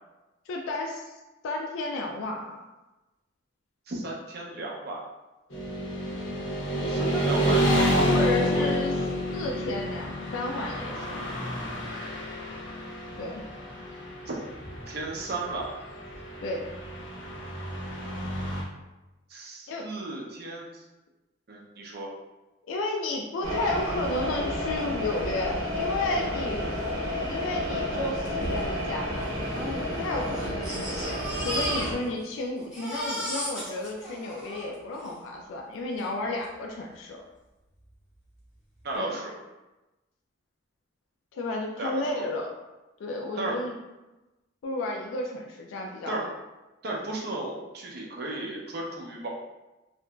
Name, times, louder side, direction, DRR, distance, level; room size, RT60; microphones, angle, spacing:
voice 1, 0.5-1.2 1.4-2.6 7.9-9.0 9.3-11.2 13.2-13.4 16.4-16.6 19.7-19.9 22.6-26.8 27.3-29.3 29.5-37.2 39.0-39.2 41.3-42.5 43.0-43.8 44.6-46.2, left 2 dB, 80° left, 1 dB, 0.3 m, -32 dB
voice 2, 3.9-5.0 6.8-9.1 14.3-14.4 14.9-15.8 19.3-20.8 21.5-22.1 38.8-39.4 41.8-42.2 43.4-43.6 46.1-46.3 46.8-49.3, right 2 dB, 50° right, -2 dB, 0.5 m, -34 dB
Motorcycle / Traffic noise roadway noise, 5.5-18.6, equal, 65° left, 0.7 m, -29 dB
sound 1, 23.4-32.0, left 1 dB, 80° right, 0.8 m, -31 dB
Crying sobbing, 28.3-28.4 28.6-28.7 29.4-32.3 32.6-35.2 36.0-36.1 36.4-36.5, equal, 5° right, 0.6 m, -35 dB
2.8 x 2.5 x 2.2 m, 1.1 s
head